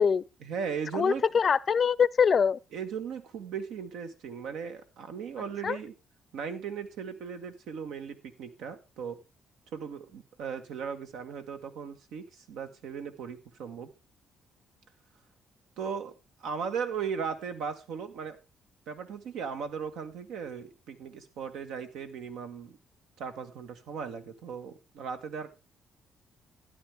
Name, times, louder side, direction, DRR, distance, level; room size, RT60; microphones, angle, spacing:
voice 1, 0.4-1.2 2.7-5.9 6.3-9.2 9.7-13.9 15.8-16.1 16.4-18.4 18.9-22.8 23.2-25.5, right 6 dB, 85° right, 1.5 m, -37 dB
voice 2, 0.9-2.6 5.6-5.8, left 6 dB, 45° left, 0.5 m, -23 dB
12.5 x 10.5 x 3.5 m
cardioid pair, 90°, 0 cm